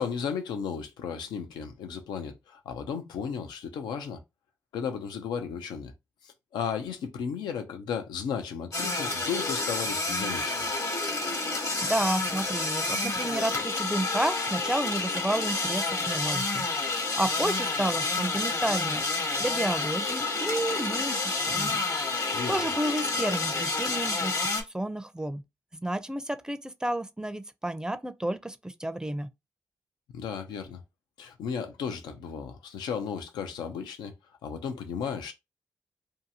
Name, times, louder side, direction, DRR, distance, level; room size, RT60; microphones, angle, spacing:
voice 1, 0.0-4.2 4.7-5.9 6.2-10.6 22.3-22.6 30.1-30.8 31.2-34.1 34.4-35.3, left 7 dB, 90° left, 0.4 m, -34 dB
sound 1, 8.7-24.6, left 3 dB, 50° left, 0.9 m, -29 dB
voice 2, 11.8-16.6 16.9-21.2 21.5-21.8 22.2-24.3 24.7-25.4 25.7-29.3, right 1 dB, 10° right, 0.5 m, -31 dB
2.7 x 2.3 x 2.7 m
supercardioid pair, 45°, 7 cm